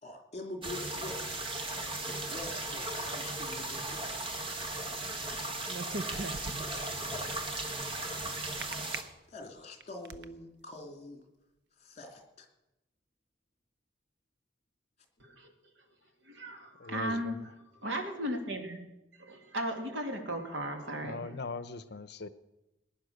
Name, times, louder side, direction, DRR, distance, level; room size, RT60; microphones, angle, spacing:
voice 1, 0.0-1.4 2.1-4.3 6.5-7.6 9.3-11.2 11.8-12.5, left 2 dB, 35° left, 4 dB, 2.5 m, -45 dB
sound 1, 0.6-9.0, right 2 dB, 30° right, 1.8 m, -37 dB
sound 2, 5.7-6.9 8.6-9.0 9.6-10.2, right 3 dB, 60° right, 0.7 m, -38 dB
voice 2, 15.2-15.5 16.3-17.4 17.8-18.8 19.2-21.2, equal, 85° right, 4 dB, 2.7 m, -36 dB
voice 3, 16.8-17.5 21.0-22.3, left 3 dB, 60° left, 14 dB, 0.8 m, -40 dB
19.5 x 10.5 x 6.5 m, 0.96 s
head